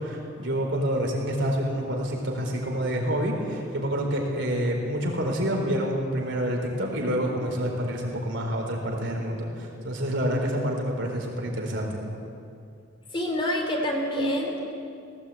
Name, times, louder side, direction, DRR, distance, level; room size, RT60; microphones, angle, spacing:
voice 1, 0.0-12.0, equal, 65° right, 1 dB, 4.0 m, -28 dB
voice 2, 13.1-14.8, equal, 25° left, 1 dB, 3.4 m, -27 dB
18.0 x 18.0 x 8.5 m, 2.4 s
head